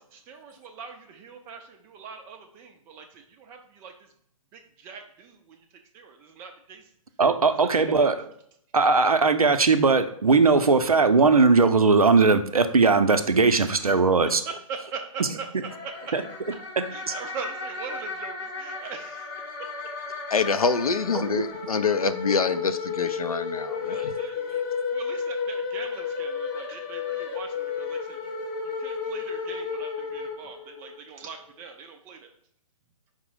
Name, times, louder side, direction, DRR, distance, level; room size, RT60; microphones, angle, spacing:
voice 1, 0.1-4.1 4.5-5.7 5.9-6.9 7.5-8.1 13.6-13.8 14.5-15.5 15.8-16.1 16.9-19.3 23.8-24.6 24.9-28.4 28.6-32.3, right 5 dB, 15° right, 4 dB, 0.4 m, -41 dB
voice 2, 7.2-8.3 8.7-14.4 16.1-16.2 16.8-17.1 21.1-21.4, right 4 dB, 80° right, 9 dB, 0.5 m, -19 dB
sound 1, 15.7-31.0, left 5 dB, 35° left, 0.8 m, -33 dB
voice 3, 20.3-24.1, left 5 dB, 80° left, 11 dB, 0.4 m, -26 dB
5.2 x 2.1 x 4.7 m, 0.67 s
figure-of-eight pair, 130°, 18 cm